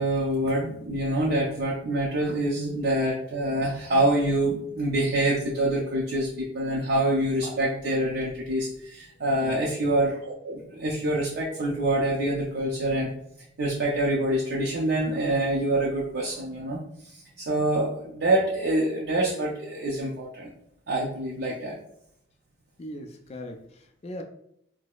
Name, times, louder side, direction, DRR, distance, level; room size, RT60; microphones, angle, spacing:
voice 1, 0.0-13.1 13.6-20.5 20.9-21.8, right 1 dB, 60° right, 0.5 m, -26 dB
voice 2, 22.8-24.2, left 1 dB, 35° left, 0.3 m, -40 dB
4.6 x 2.0 x 2.3 m
head